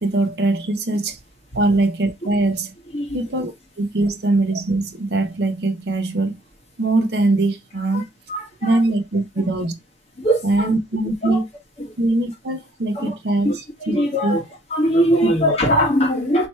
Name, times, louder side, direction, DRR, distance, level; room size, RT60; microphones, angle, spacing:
voice 1, 0.0-1.2 1.5-2.7 3.1-6.4 6.8-8.0 8.6-9.8 10.4-11.4 12.0-13.5 13.9-14.0 14.2-14.4 15.2-15.3, right 2 dB, 60° right, 0.8 m, -21 dB
voice 2, 8.3-8.8 10.2-10.7 11.2-11.4 11.8-11.9 12.9-13.1 13.4-14.4 14.7-16.5, equal, 35° left, 1.4 m, -21 dB
3.2 x 2.9 x 4.4 m
head